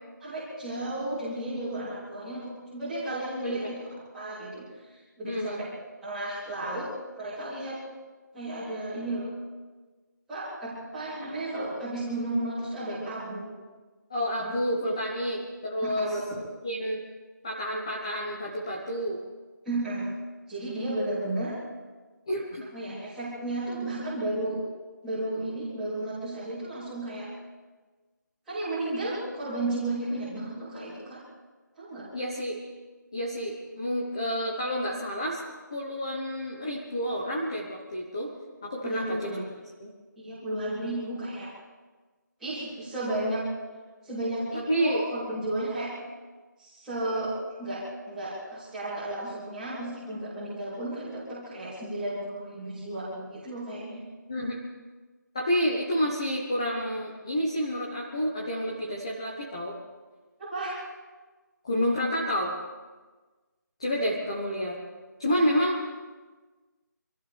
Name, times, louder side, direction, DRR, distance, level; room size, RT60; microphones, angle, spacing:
voice 1, 0.2-3.8 4.1-4.6 5.2-5.7 6.0-6.9 7.2-7.8 8.3-9.3 10.3-13.5 14.4-14.5 15.8-16.2 19.7-20.1 20.5-21.6 22.7-24.6 25.0-27.3 28.5-31.2 31.8-32.1 38.8-39.5 40.2-41.5 42.4-43.4 44.0-45.9 46.6-54.0 60.4-60.8, right 1 dB, ahead, -14 dB, 3.4 m, -33 dB
voice 2, 5.2-5.6 14.1-16.2 16.6-17.0 17.4-19.2 22.3-22.7 32.1-32.6 33.1-35.4 35.7-38.3 38.6-39.3 39.8-39.9 44.7-45.0 54.3-54.6 55.3-59.8 61.6-62.5 63.8-64.8 65.2-65.8, equal, 15° left, -3 dB, 1.2 m, -29 dB
27.0 x 15.0 x 3.5 m, 1.3 s
figure-of-eight pair, 180°, 10 cm